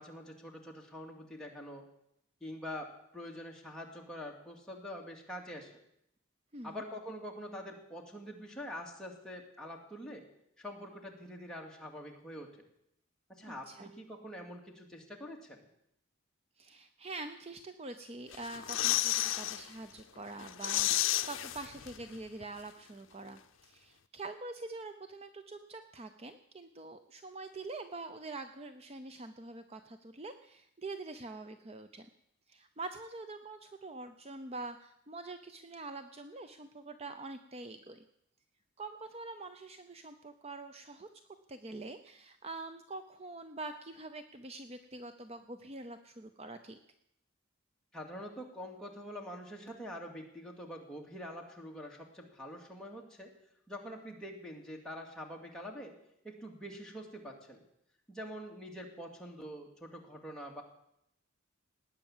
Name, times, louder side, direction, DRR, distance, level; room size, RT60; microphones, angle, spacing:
voice 1, 0.0-1.8 2.4-5.7 6.6-10.2 10.6-12.5 13.3-15.6 47.9-53.3 53.7-55.9 56.2-57.6 58.1-60.6, equal, 5° left, -1 dB, 2.3 m, -45 dB
voice 2, 6.5-6.8 13.5-13.9 16.6-32.1 32.5-38.0 38.8-41.1 41.5-46.8, right 3 dB, 30° right, 9 dB, 0.6 m, -45 dB
sound 1, 18.3-19.6 20.0-20.1 20.4-22.2 22.4-22.5, left 14 dB, 70° left, 0.6 m, -32 dB
19.0 x 9.0 x 7.3 m, 0.77 s
head